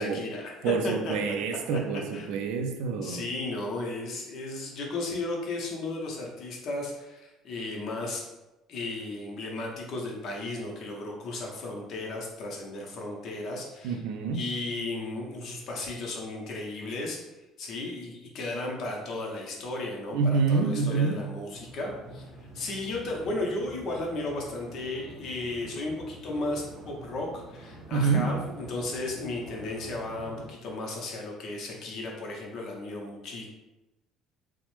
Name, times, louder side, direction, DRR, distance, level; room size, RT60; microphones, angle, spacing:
voice 1, 0.0-1.3 1.7-1.8 2.1-2.3 3.0-8.3 8.7-14.0 14.3-17.2 17.6-22.3 22.5-33.5, left 2 dB, 45° left, -1 dB, 0.6 m, -35 dB
voice 2, 0.6-3.2 13.8-14.4 20.1-21.2 27.9-28.4, right 4 dB, 80° right, 6 dB, 0.3 m, -27 dB
sound 1, 21.5-30.5, right 1 dB, 45° right, 0.7 m, -47 dB
3.0 x 2.0 x 3.0 m, 1.0 s
cardioid pair, 160°, 0 cm